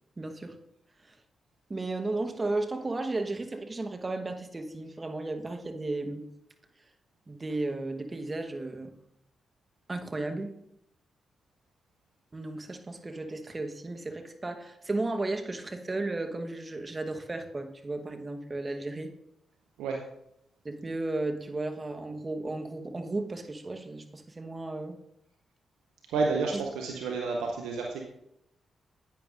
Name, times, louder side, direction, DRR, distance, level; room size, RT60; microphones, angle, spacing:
voice 1, 0.2-0.6 1.0-1.2 1.7-6.3 7.3-9.0 9.9-10.6 12.3-19.1 20.6-25.0 26.5-26.6, right 2 dB, 30° right, 6 dB, 1.1 m, -34 dB
voice 2, 26.1-28.0, right 4 dB, 80° right, 1 dB, 0.8 m, -30 dB
10.5 x 9.0 x 2.5 m, 0.79 s
hypercardioid pair, 40°, 0 cm